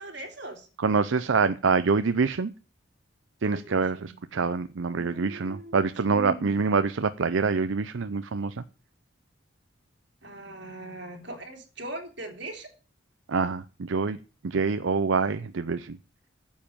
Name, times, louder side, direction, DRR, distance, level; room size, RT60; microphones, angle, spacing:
voice 1, 0.0-0.7 3.4-4.1 4.9-6.8 10.2-12.7, right 2 dB, 60° right, 3 dB, 3.3 m, -40 dB
voice 2, 0.8-2.5 3.4-8.6 13.3-14.2 14.4-16.0, right 4 dB, 80° right, 11 dB, 0.6 m, -26 dB
9.4 x 7.4 x 8.8 m, 0.35 s
head